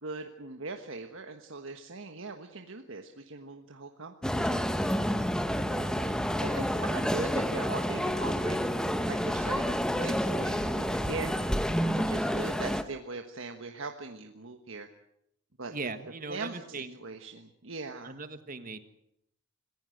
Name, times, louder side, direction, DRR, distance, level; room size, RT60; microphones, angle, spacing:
voice 1, 0.0-4.6 5.7-8.7 9.0-11.4 11.9-14.9 15.6-15.9 16.3-16.6 17.0-18.1, right 3 dB, 65° right, 5 dB, 1.4 m, -40 dB
sound 1, 4.2-12.8, equal, 5° left, 1.0 m, -29 dB
voice 2, 15.7-17.0 18.0-18.8, right 3 dB, 40° right, 10 dB, 1.6 m, -39 dB
26.5 x 15.5 x 7.9 m, 0.76 s
head